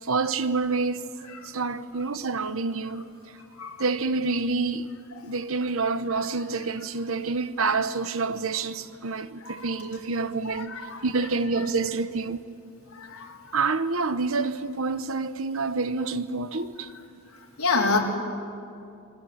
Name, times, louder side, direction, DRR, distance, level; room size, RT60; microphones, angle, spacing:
voice 1, 0.0-1.1 1.4-3.1 3.8-4.9 5.2-10.7 11.0-12.5 13.5-16.9, right 4 dB, 65° right, 1.0 m, -27 dB
voice 2, 10.4-11.0 12.9-13.6 17.3-18.0, left 3 dB, 85° left, 4.0 m, -29 dB
27.5 x 24.5 x 8.8 m
head